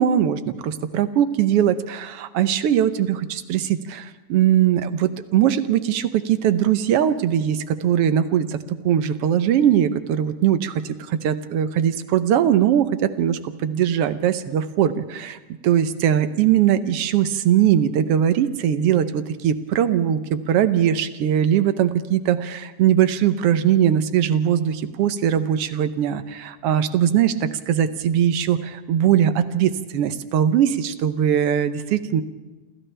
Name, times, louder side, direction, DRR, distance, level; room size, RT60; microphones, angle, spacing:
voice 1, 0.0-32.2, right 10 dB, 70° right, 11 dB, 1.4 m, -20 dB
28.5 x 27.0 x 3.4 m, 1.2 s
omnidirectional pair, 3.6 m